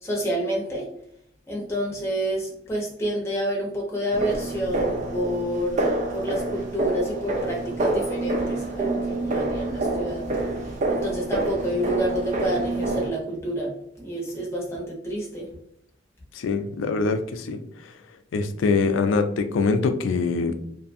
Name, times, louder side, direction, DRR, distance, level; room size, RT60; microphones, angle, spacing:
voice 1, 0.0-0.9 1.5-10.3 10.9-13.7 14.0-15.5, equal, 15° left, -3 dB, 0.7 m, -28 dB
sound 1, 4.1-13.1, right 2 dB, 40° right, 0.4 m, -27 dB
voice 2, 16.3-17.9 18.3-20.6, left 4 dB, 90° left, 9 dB, 0.3 m, -24 dB
2.6 x 2.4 x 2.5 m, 0.67 s
head